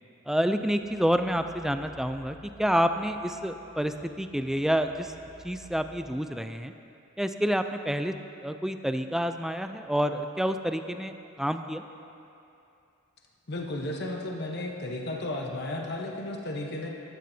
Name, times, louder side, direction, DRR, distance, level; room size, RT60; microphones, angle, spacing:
voice 1, 0.3-5.1 5.4-6.7 7.2-8.1 8.4-11.8, equal, ahead, 8 dB, 0.3 m, -28 dB
sound 1, 0.6-6.0, left 2 dB, 30° left, 0.8 m, -54 dB
voice 2, 13.5-16.9, left 1 dB, 55° left, 0 dB, 1.0 m, -34 dB
15.0 x 12.0 x 2.7 m, 2.7 s
head